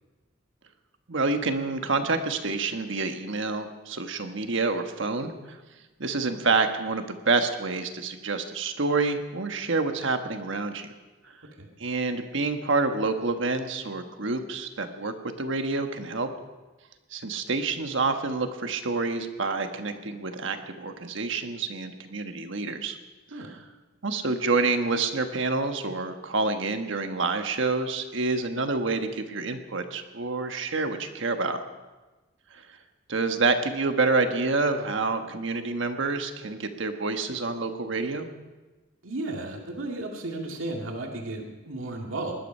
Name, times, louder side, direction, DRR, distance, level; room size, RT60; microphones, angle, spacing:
voice 1, 1.1-5.3 6.0-10.9 11.8-16.3 17.1-23.0 24.0-31.6 32.5-32.6 33.1-38.3, right 3 dB, 65° right, 6 dB, 1.4 m, -28 dB
voice 2, 39.0-42.3, right 2 dB, 90° right, 1 dB, 2.2 m, -34 dB
19.5 x 12.0 x 5.5 m, 1.2 s
head